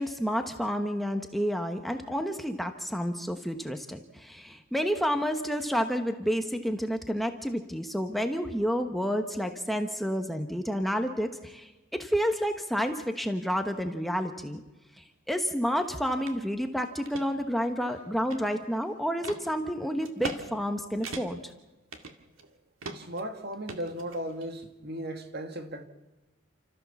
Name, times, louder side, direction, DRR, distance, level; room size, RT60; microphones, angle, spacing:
voice 1, 0.0-14.6 15.0-21.5, equal, ahead, 1.1 m, -30 dB
sound 1, 16.3-16.4 16.8-17.3 17.8-18.7 19.2-19.4 20.0-20.4 20.7-20.8 21.0-21.5 21.9-22.5 22.8-23.2 23.7-24.5, right 3 dB, 90° right, 2.2 m, -40 dB
voice 2, 22.9-25.8, right 1 dB, 50° right, 1.9 m, -36 dB
30.0 x 14.0 x 7.1 m
head